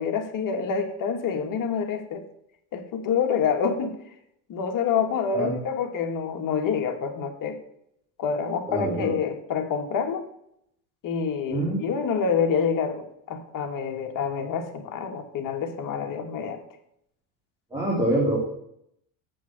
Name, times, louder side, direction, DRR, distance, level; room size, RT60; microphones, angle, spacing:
voice 1, 0.0-2.2 2.7-4.0 4.5-7.6 8.2-10.3 11.0-16.6 17.9-18.0, left 6 dB, 55° left, 5 dB, 1.6 m, -27 dB
voice 2, 8.7-9.1 11.5-11.8 17.7-18.4, right 1 dB, 10° right, -7 dB, 3.5 m, -25 dB
7.6 x 5.5 x 7.3 m, 0.74 s
supercardioid pair, 105°, 39 cm